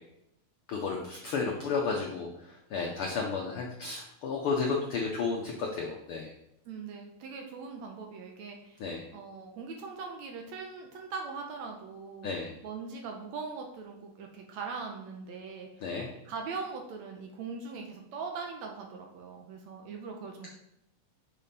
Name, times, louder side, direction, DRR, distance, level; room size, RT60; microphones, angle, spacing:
voice 1, 0.7-6.3 8.8-9.0 12.2-12.5 15.8-16.1, left 4 dB, 80° left, 0 dB, 1.2 m, -32 dB
voice 2, 6.7-8.8 9.1-12.3 12.6-15.9 16.3-20.5, right 4 dB, 75° right, 2 dB, 1.9 m, -41 dB
6.7 x 5.3 x 4.2 m, 0.84 s
omnidirectional pair, 3.5 m